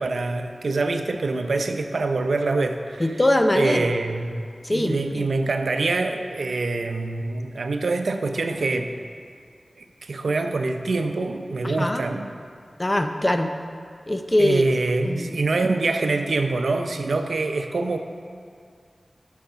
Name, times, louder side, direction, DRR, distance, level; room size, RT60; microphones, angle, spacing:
voice 1, 0.0-3.1 3.5-8.9 9.8-12.3 14.4-18.0, right 3 dB, 85° right, 6 dB, 0.6 m, -25 dB
voice 2, 3.0-3.9 4.6-5.3 11.6-12.0 12.8-13.5 14.1-14.6 15.0-15.4, left 1 dB, 25° left, 6 dB, 0.7 m, -22 dB
9.3 x 7.1 x 5.6 m, 2.2 s
wide cardioid pair, 60°, 0 cm